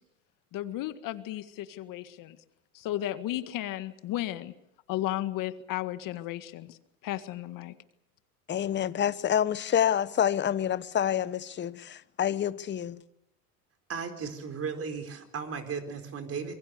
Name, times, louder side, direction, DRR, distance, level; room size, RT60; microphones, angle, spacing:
voice 1, 0.5-2.4 2.8-4.5 4.9-6.8 7.0-7.7, left 14 dB, 50° left, 1.8 m, -34 dB
voice 2, 8.5-13.0, left 9 dB, 25° left, 1.0 m, -27 dB
voice 3, 13.9-16.6, right 5 dB, 30° right, 4.4 m, -35 dB
25.5 x 22.5 x 6.8 m
supercardioid pair, 105°, 43 cm